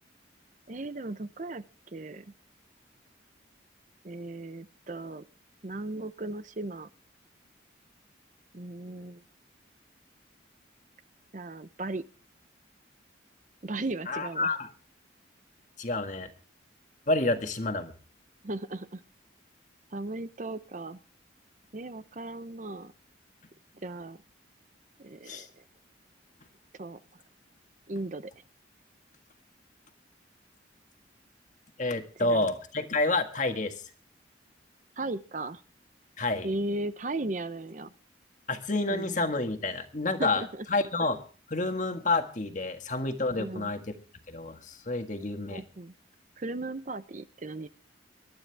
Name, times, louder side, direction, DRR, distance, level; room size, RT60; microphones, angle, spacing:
voice 1, 0.7-1.6 1.9-2.3 4.0-5.3 5.6-6.9 8.5-9.2 11.3-12.0 13.6-14.6 18.4-19.0 19.9-21.0 21.7-22.9 23.7-24.2 25.0-25.6 26.7-27.2 27.9-28.3 32.2-32.5 35.0-35.6 36.4-37.9 38.9-39.3 40.2-40.7 43.4-43.7 45.5-45.9 46.4-47.7, right 2 dB, 40° right, 13 dB, 0.7 m, -36 dB
voice 2, 14.1-14.7 15.8-16.3 17.1-17.9 25.3-25.5 31.8-33.7 36.2-36.5 38.5-41.2 41.5-43.8 44.3-45.6, left 2 dB, 40° left, 7 dB, 1.7 m, -29 dB
24.0 x 12.0 x 3.4 m, 0.38 s
head